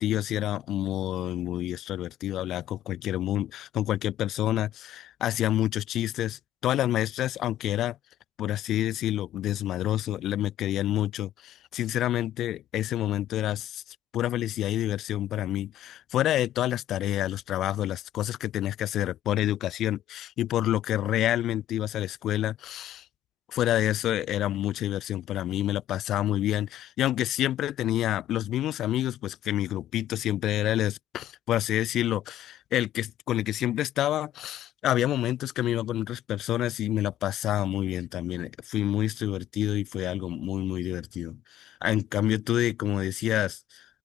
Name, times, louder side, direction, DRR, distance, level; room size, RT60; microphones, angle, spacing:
voice 1, 0.0-8.0 8.4-13.8 14.1-23.1 23.5-43.9, left 13 dB, 80° left, 1.4 m, -28 dB
cardioid pair, 90°, 0 cm